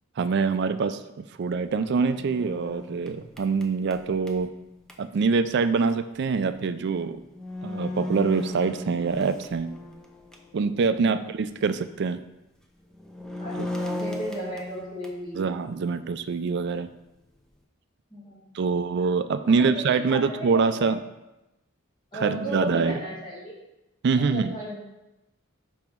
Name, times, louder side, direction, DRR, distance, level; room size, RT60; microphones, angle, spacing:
voice 1, 0.2-4.5 5.0-7.2 7.6-9.8 10.5-12.2 15.3-16.9 18.5-21.0 22.2-23.0 24.0-24.6, right 5 dB, 55° right, 11 dB, 0.4 m, -25 dB
sound 1, 1.7-5.0 6.8-6.9 7.3-10.6 11.0-11.1 12.8-15.3, left 1 dB, 5° left, 0.5 m, -36 dB
voice 2, 10.9-11.4 13.4-15.5 18.1-18.6 19.4-20.9 22.1-23.5 24.3-24.8, equal, 25° left, -6 dB, 2.2 m, -35 dB
5.5 x 5.0 x 4.5 m, 0.96 s
head